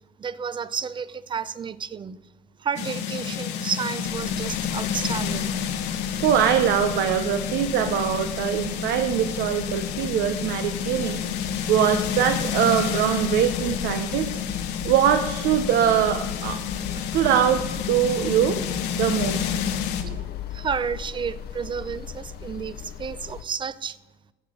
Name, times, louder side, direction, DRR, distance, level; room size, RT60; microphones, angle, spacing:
voice 1, 0.0-2.2 2.6-5.5 20.1-24.0, right 6 dB, 30° right, 17 dB, 0.5 m, -31 dB
sound 1, 2.8-20.0, left 8 dB, 85° left, 1.1 m, -29 dB
sound 2, 4.0-23.4, left 9 dB, 70° left, 0.8 m, -38 dB
voice 2, 6.2-11.2 11.7-14.3 14.8-16.6 17.0-18.6 19.0-19.5 20.0-20.2, right 9 dB, 85° right, 8 dB, 0.8 m, -23 dB
11.0 x 6.8 x 6.3 m, 1.1 s
cardioid pair, 110°, 17 cm